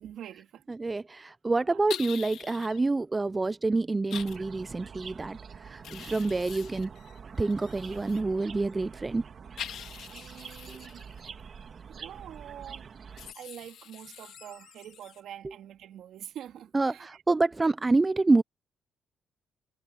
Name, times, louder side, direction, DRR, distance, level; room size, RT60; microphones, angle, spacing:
voice 1, 0.0-1.0 1.6-1.8 6.0-6.2 10.0-11.0 11.9-12.9 13.3-17.2, right 10 dB, 75° right, 3.1 m, -46 dB
voice 2, 0.7-6.9 7.4-9.2 16.7-18.4, right 3 dB, 20° right, 0.3 m, -27 dB
sound 1, 1.9-2.8 4.1-4.4 5.8-8.2 9.6-11.3 13.2-15.2, left 10 dB, 75° left, 2.5 m, -44 dB
sound 2, 4.1-13.3, right 6 dB, 50° right, 1.5 m, -46 dB
cardioid pair, 90°, 0 cm